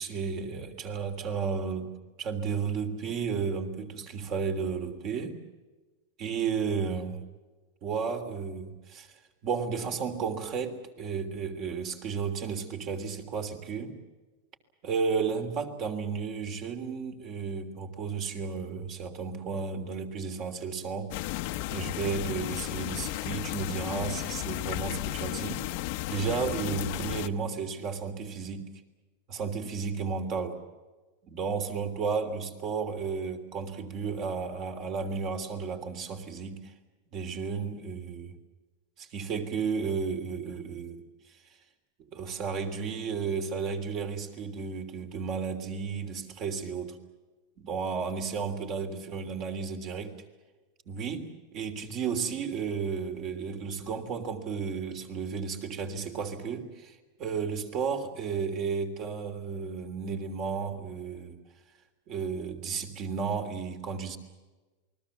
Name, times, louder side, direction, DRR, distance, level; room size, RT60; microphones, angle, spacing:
voice 1, 0.0-1.9 2.2-5.4 6.2-7.2 7.8-9.1 9.4-14.0 14.8-21.1 21.7-25.7 26.1-28.6 29.3-30.6 31.2-36.7 37.1-38.3 39.0-41.0 42.0-47.0 47.6-50.1 50.8-61.4 62.1-64.2, right 5 dB, 40° right, 6 dB, 3.2 m, -33 dB
sound 1, 21.1-27.3, left 17 dB, 55° left, 1.0 m, -34 dB
28.5 x 20.5 x 7.3 m, 1.2 s
supercardioid pair, 150°, 0 cm